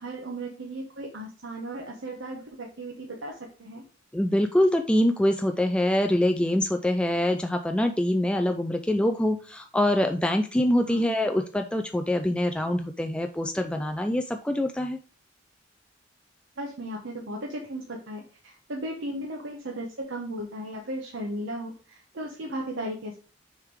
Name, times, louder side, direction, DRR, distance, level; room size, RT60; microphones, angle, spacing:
voice 1, 0.0-3.8 10.9-11.1 16.6-23.2, right 1 dB, 85° right, 0 dB, 1.1 m, -36 dB
voice 2, 4.1-15.0, left 1 dB, 5° left, 5 dB, 0.4 m, -24 dB
6.6 x 3.6 x 4.6 m, 0.37 s
head